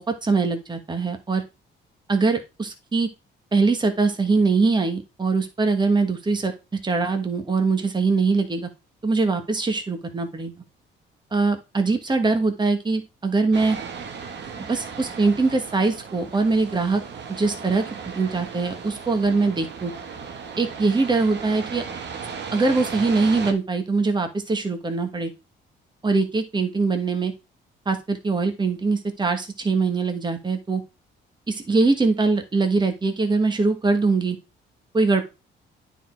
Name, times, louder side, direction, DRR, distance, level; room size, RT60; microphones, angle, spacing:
voice 1, 0.0-1.4 2.1-3.1 3.5-6.5 6.8-8.7 9.0-10.5 11.3-13.8 14.6-17.0 17.3-17.8 18.1-19.9 20.6-21.9 22.5-25.3 26.0-27.3 27.8-30.8 31.5-34.4 34.9-35.2, right 3 dB, 20° right, 6 dB, 1.5 m, -22 dB
sound 1, 13.5-23.5, right 6 dB, 60° right, 1.5 m, -36 dB
9.2 x 4.1 x 4.5 m, 0.27 s
cardioid pair, 90°, 20 cm